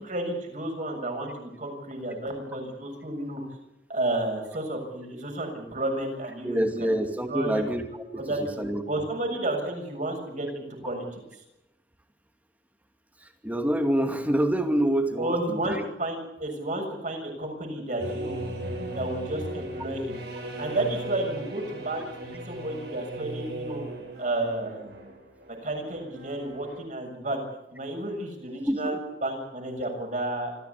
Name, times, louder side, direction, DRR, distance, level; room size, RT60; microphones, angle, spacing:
voice 1, 0.0-3.4 3.9-6.9 7.3-7.6 8.2-8.4 8.9-11.2 15.2-18.4 18.9-20.2 20.6-23.8 24.2-25.0 25.5-27.4 27.7-30.5, right 2 dB, 45° right, 3 dB, 6.9 m, -31 dB
voice 2, 6.4-7.9 8.1-9.0 13.2-15.8 28.7-29.0, right 1 dB, 10° right, 6 dB, 2.4 m, -27 dB
sound 1, 18.0-26.8, right 1 dB, 65° right, 7.4 m, -37 dB
26.0 x 15.0 x 8.4 m, 0.91 s
head